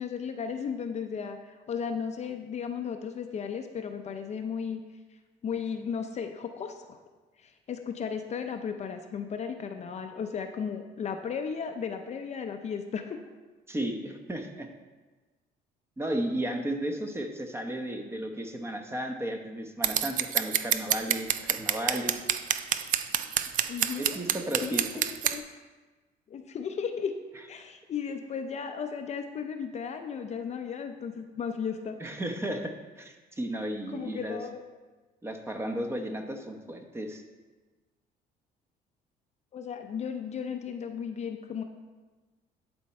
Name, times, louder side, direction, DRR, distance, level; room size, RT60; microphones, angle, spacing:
voice 1, 0.0-4.8 5.4-7.0 7.4-13.2 23.7-24.2 24.6-25.4 26.3-27.1 27.5-32.0 33.9-34.6 39.5-41.6, left 6 dB, 40° left, 6 dB, 0.6 m, -35 dB
voice 2, 13.7-14.7 16.0-22.2 24.0-24.8 32.0-34.4 35.2-37.2, right 1 dB, 15° right, 5 dB, 0.9 m, -34 dB
Scissors, 19.8-25.4, right 10 dB, 50° right, 0.4 m, -27 dB
11.0 x 4.5 x 4.3 m, 1.3 s
cardioid pair, 110°, 17 cm